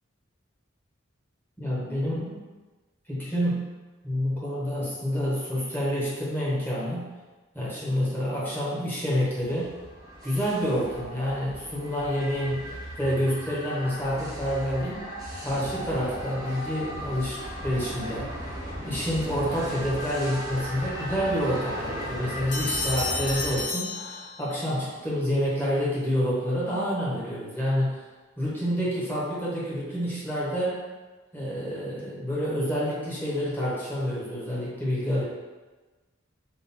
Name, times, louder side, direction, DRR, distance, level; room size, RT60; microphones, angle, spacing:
voice 1, 1.6-2.4 3.1-3.7 4.0-7.1 7.5-9.7 10.2-15.0 15.4-18.3 18.8-28.0 28.4-30.8 31.3-35.2, equal, 10° left, -8 dB, 1.1 m, -28 dB
sound 1, 9.4-23.6, equal, 15° right, 0.8 m, -37 dB
sound 2, 22.5-24.7, left 3 dB, 40° left, 1.1 m, -32 dB
3.7 x 2.5 x 4.1 m, 1.2 s
head